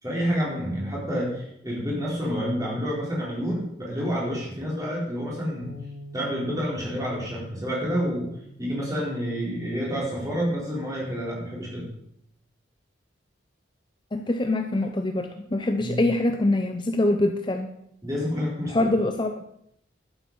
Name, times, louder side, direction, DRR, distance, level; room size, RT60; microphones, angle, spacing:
voice 1, 0.0-5.7 6.1-8.3 8.6-11.9 15.8-16.0 18.0-18.8, equal, 20° right, -4 dB, 4.0 m, -28 dB
Bass guitar, 5.6-10.0 10.7-11.8, right 1 dB, 85° left, 2.2 m, -46 dB
voice 2, 14.1-17.7 18.7-19.3, left 2 dB, 25° left, 6 dB, 0.6 m, -24 dB
11.5 x 8.0 x 5.4 m, 0.74 s
head